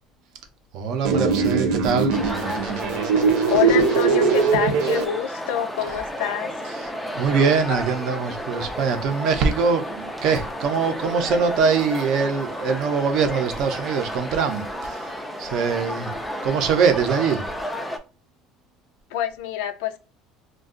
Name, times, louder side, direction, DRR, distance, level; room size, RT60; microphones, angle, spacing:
voice 1, 0.7-2.2 6.7-15.1 15.4-16.1 16.4-17.4, right 5 dB, 50° right, 0.5 m, -23 dB
sound 1, 1.0-5.0, right 5 dB, 80° right, 0.8 m, -21 dB
sound 2, 2.1-18.0, equal, ahead, 0.3 m, -32 dB
voice 2, 3.5-6.5 19.1-20.0, left 10 dB, 90° left, 0.4 m, -26 dB
2.5 x 2.3 x 3.6 m
cardioid pair, 180°, 0 cm